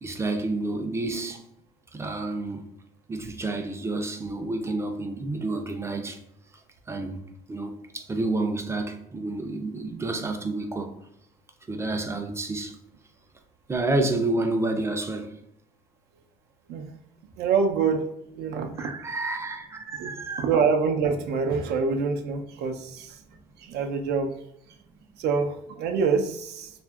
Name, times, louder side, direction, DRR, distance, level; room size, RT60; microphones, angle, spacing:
voice 1, 0.0-1.4 1.9-2.6 3.1-6.2 6.9-7.2 7.5-10.9 11.7-12.8 13.7-15.3 18.8-20.4, right 2 dB, 15° right, 0.3 m, -29 dB
voice 2, 17.4-18.1 18.3-18.7 20.0-20.1 20.4-23.2 23.6-24.3 25.2-26.7, right 5 dB, 75° right, 0.4 m, -25 dB
2.7 x 2.4 x 2.3 m
cardioid pair, 110°, 17 cm